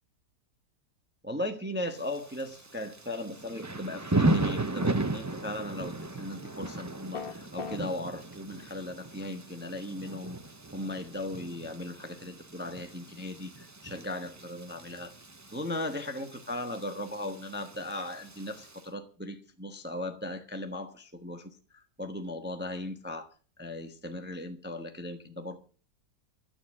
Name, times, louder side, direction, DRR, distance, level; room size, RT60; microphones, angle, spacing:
voice 1, 1.2-10.4 10.7-15.1 15.5-23.3 23.6-25.6, left 1 dB, 5° right, 1.1 m, -37 dB
Thunder / Rain, 2.0-18.8, right 2 dB, 30° right, 0.3 m, -36 dB
sound 1, 7.1-7.8, left 5 dB, 35° left, 1.5 m, -36 dB
12.5 x 9.8 x 7.4 m
omnidirectional pair, 1.7 m